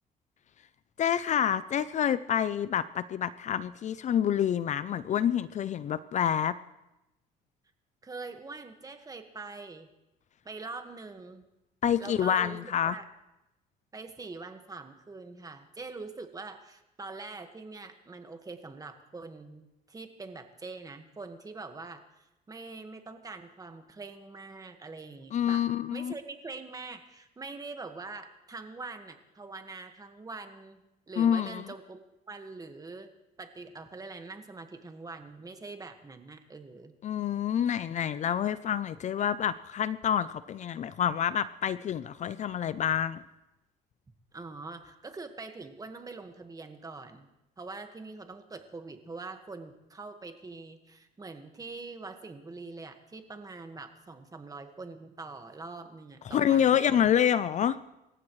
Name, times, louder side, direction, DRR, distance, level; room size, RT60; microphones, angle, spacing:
voice 1, 1.0-6.6 11.8-12.9 25.3-26.1 31.2-31.7 37.0-43.2 56.3-57.8, left 9 dB, 45° left, 16 dB, 0.5 m, -27 dB
voice 2, 8.0-9.9 10.4-11.4 12.0-13.1 13.9-22.0 22.5-25.6 25.9-30.8 31.1-33.1 33.4-36.9 44.3-47.3 47.6-57.1, right 3 dB, 20° right, 6 dB, 1.6 m, -44 dB
28.0 x 15.0 x 3.2 m, 0.95 s
cardioid pair, 110°, 17 cm